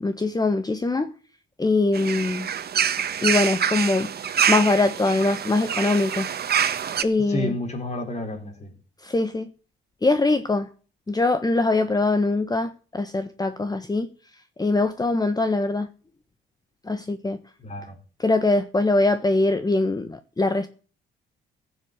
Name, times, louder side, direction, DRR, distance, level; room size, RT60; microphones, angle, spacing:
voice 1, 0.0-1.1 1.6-2.5 3.2-4.1 4.5-6.3 7.0-7.5 9.0-9.5 10.0-10.7 11.1-14.1 14.6-15.9 16.9-17.4 18.2-20.7, left 2 dB, 20° left, 1.4 m, -22 dB
sound 1, 1.9-7.0, right 8 dB, 50° right, 1.6 m, -25 dB
voice 2, 7.2-8.7 17.6-18.0, left 1 dB, 35° left, 4.8 m, -30 dB
16.0 x 7.7 x 8.3 m
cardioid pair, 90°, 20 cm